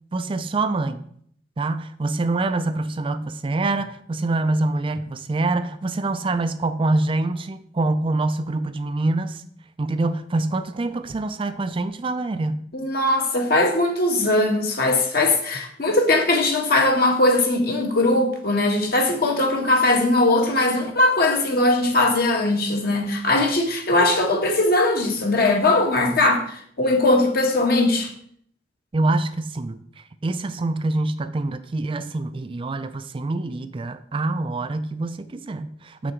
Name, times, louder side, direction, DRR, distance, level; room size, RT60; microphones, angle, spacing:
voice 1, 0.1-1.0 1.6-9.4 9.8-12.6 28.9-36.1, right 2 dB, 30° right, 0.4 m, -25 dB
voice 2, 12.7-28.1, left 2 dB, 55° left, 1.4 m, -20 dB
6.9 x 6.3 x 4.5 m
head